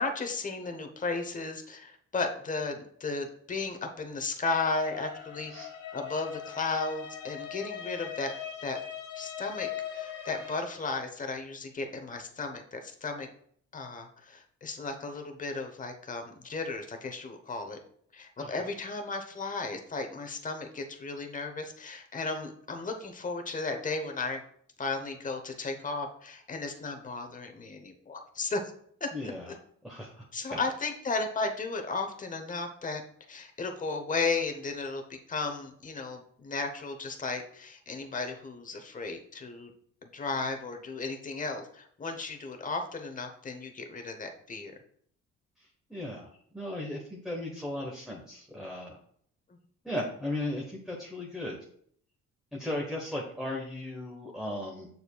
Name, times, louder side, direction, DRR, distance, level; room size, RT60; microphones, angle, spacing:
voice 1, 0.0-5.5 5.9-8.3 8.6-8.8 9.2-13.3 13.7-17.8 18.1-24.4 24.8-28.6 29.0-29.5 30.3-33.0 33.3-39.7 40.0-44.7, left 3 dB, 25° left, 5 dB, 0.9 m, -34 dB
sound 1, 4.6-10.6, left 10 dB, 85° left, 1.7 m, -40 dB
voice 2, 29.1-29.4 29.8-30.6 45.9-46.3 46.5-49.0 49.8-51.6 52.5-54.9, left 1 dB, ahead, -2 dB, 1.1 m, -36 dB
6.7 x 6.7 x 2.3 m, 0.64 s
cardioid pair, 90°, 30 cm